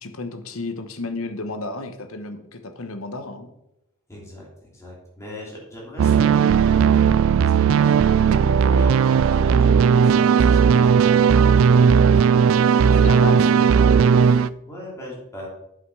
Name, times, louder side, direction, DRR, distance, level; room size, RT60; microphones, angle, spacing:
voice 1, 0.0-3.5 13.0-13.5, left 3 dB, 75° left, 8 dB, 1.1 m, -32 dB
voice 2, 4.1-7.1 7.4-13.8 14.2-15.5, equal, 15° left, -4 dB, 3.0 m, -40 dB
sound 1, 6.0-14.5, right 6 dB, 65° right, 0.3 m, -16 dB
8.0 x 5.8 x 6.3 m, 0.85 s
head